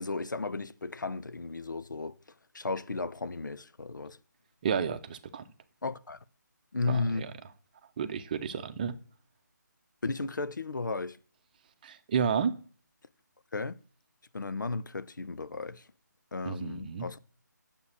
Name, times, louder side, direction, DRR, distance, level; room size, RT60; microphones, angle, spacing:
voice 1, 0.0-2.2 2.5-4.2 5.8-6.2 6.7-7.3 10.0-11.2 13.5-13.8 14.3-15.8 16.3-17.2, left 3 dB, 75° left, 0.8 m, -34 dB
voice 2, 4.6-5.4 6.8-7.3 8.0-9.0 11.8-12.5 16.5-17.1, right 7 dB, 25° right, 0.8 m, -31 dB
9.7 x 7.1 x 6.4 m
figure-of-eight pair, 155°, 10 cm